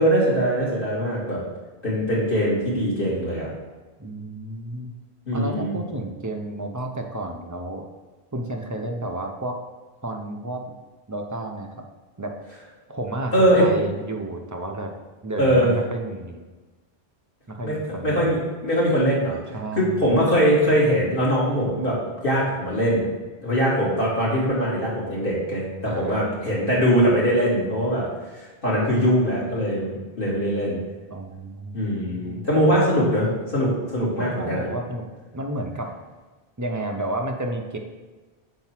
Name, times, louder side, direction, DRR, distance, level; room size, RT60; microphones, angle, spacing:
voice 1, 0.0-1.4 1.8-3.5 5.3-5.8 13.3-13.7 15.4-15.7 17.6-19.4 19.7-22.0 22.2-23.1 23.4-28.0 28.3-30.8 31.7-34.7, equal, 55° left, -8 dB, 2.6 m, -22 dB
voice 2, 4.0-4.9 5.3-7.9 8.3-9.6 10.0-10.8 11.1-11.8 12.2-12.3 12.9-14.9 15.2-16.4 17.5-18.3 19.5-20.0 25.9-26.5 31.1-32.4 34.2-35.0 35.3-35.9 36.6-37.8, right 2 dB, 20° right, 2 dB, 0.5 m, -31 dB
4.5 x 4.5 x 5.8 m, 1.2 s
omnidirectional pair, 1.1 m